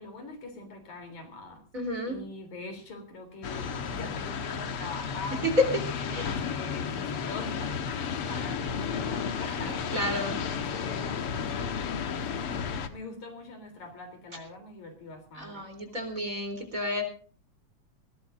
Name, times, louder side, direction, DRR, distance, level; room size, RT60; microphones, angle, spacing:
voice 1, 0.0-1.6 2.1-5.4 6.1-11.6 12.5-15.6, left 2 dB, 75° left, 6 dB, 4.9 m, -43 dB
voice 2, 1.7-2.2 5.4-5.7 6.1-6.4 9.9-10.4 15.3-17.0, left 2 dB, 25° right, 4 dB, 3.9 m, -29 dB
sound 1, 3.4-12.9, left 6 dB, 55° left, 1.9 m, -33 dB
21.5 x 18.0 x 2.6 m, 0.42 s
omnidirectional pair, 3.4 m